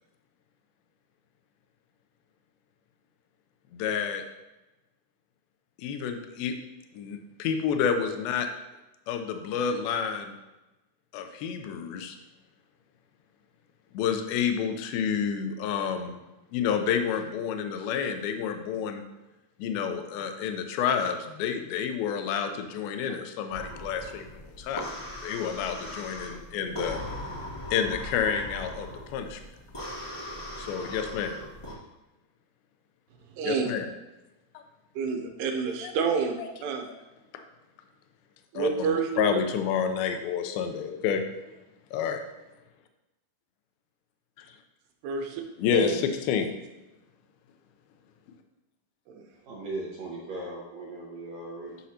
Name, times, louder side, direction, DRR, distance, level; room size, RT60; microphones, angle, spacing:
voice 1, 3.7-4.2 5.8-6.5 6.9-8.5 9.1-10.3 11.1-12.2 13.9-16.2 16.5-19.0 19.6-24.3 24.6-24.9 25.2-27.0 27.7-29.4 30.6-31.4 33.5-33.9 34.5-34.6 35.8-35.9 38.5-41.2 41.9-42.2 45.6-46.0 46.3-46.5, left 7 dB, 80° left, 6 dB, 2.4 m, -29 dB
sound 1, 23.5-31.7, left 1 dB, 25° left, 0.6 m, -39 dB
voice 2, 33.4-33.7 35.0-36.4 36.6-36.9 38.5-39.4 45.0-45.4 45.7-46.0 49.1-49.3, right 5 dB, 90° right, 3 dB, 3.0 m, -28 dB
voice 3, 49.5-51.8, right 2 dB, 65° right, -4 dB, 1.8 m, -38 dB
9.9 x 6.2 x 2.8 m, 1.0 s
omnidirectional pair, 4.6 m